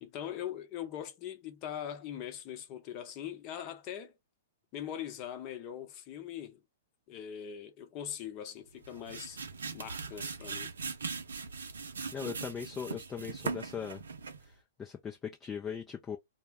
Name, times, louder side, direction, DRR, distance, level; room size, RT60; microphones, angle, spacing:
voice 1, 0.0-4.1 4.7-6.6 7.1-9.4 9.7-10.7, left 10 dB, 40° left, 0.8 m, -41 dB
sound 1, 8.7-14.5, right 5 dB, 80° right, 0.5 m, -40 dB
voice 2, 12.1-14.0 14.4-16.2, left 7 dB, 20° left, 0.4 m, -39 dB
2.2 x 2.1 x 3.4 m
hypercardioid pair, 115°, 0 cm